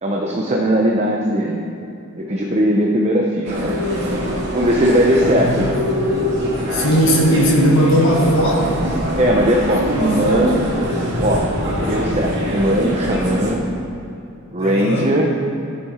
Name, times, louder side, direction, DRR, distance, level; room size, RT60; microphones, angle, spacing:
voice 1, 0.0-1.6 2.1-3.7 4.5-5.8 9.2-10.7 11.2-11.5 11.8-13.6 14.5-15.3, equal, 30° right, -1 dB, 0.8 m, -18 dB
sound 1, 3.5-13.5, equal, 55° right, 2.3 m, -23 dB
voice 2, 5.1-5.6 6.7-9.0 9.7-10.4 14.6-15.1, equal, 65° left, -2 dB, 2.0 m, -18 dB
14.5 x 7.5 x 4.3 m, 2.7 s
head